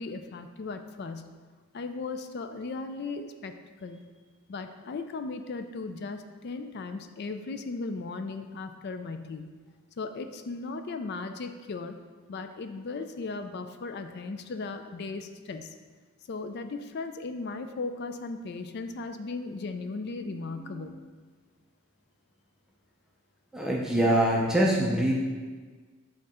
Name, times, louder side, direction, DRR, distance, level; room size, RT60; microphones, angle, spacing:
voice 1, 0.0-1.3 1.7-3.5 3.8-4.0 4.5-9.5 10.0-12.0 12.3-15.7 16.3-21.0, left 3 dB, 45° left, 8 dB, 0.4 m, -37 dB
voice 2, 20.6-20.9 23.5-25.2, right 1 dB, 5° right, -3 dB, 0.5 m, -24 dB
7.5 x 3.7 x 4.3 m, 1.4 s
head